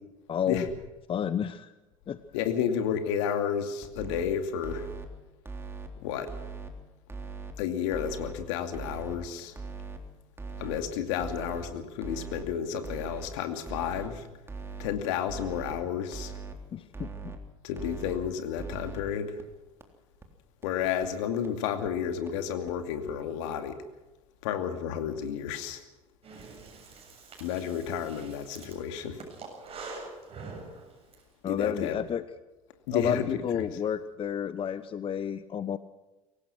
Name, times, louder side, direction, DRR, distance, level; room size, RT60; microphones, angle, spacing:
voice 1, 0.3-0.6 1.1-1.7 2.1-2.2 16.7-17.3 31.4-32.2 32.9-35.8, left 8 dB, 30° left, 14 dB, 0.9 m, -31 dB
voice 2, 2.3-4.9 6.0-6.3 7.6-9.6 10.6-14.3 14.8-16.3 17.6-19.4 20.6-23.8 24.4-25.8 27.4-29.2 31.5-32.0 32.9-33.3 33.5-33.6, left 8 dB, 65° left, 7 dB, 2.6 m, -31 dB
sound 1, 3.8-4.2 4.6-5.1 5.4-5.9 6.3-6.7 7.1-7.5 7.9-8.3 8.7-9.2 9.6-10.0 10.4-10.8 11.2-11.6 12.0-12.4 12.8-13.3 13.7-14.1 14.5-14.9 15.3-15.7 16.1-16.5 16.9-17.4 17.8-18.2 18.6-19.0 19.4-19.5 19.8-19.9 20.2-20.3 20.6-20.7 21.0-21.1 21.4-21.5 21.8-21.9 22.3-22.4 22.7-22.8 23.1-23.2, right 5 dB, 15° right, 3.5 m, -40 dB
Breathing, 26.2-31.2, right 3 dB, 35° right, 7.3 m, -45 dB
23.5 x 18.5 x 6.2 m, 1.1 s
figure-of-eight pair, 70°, 17 cm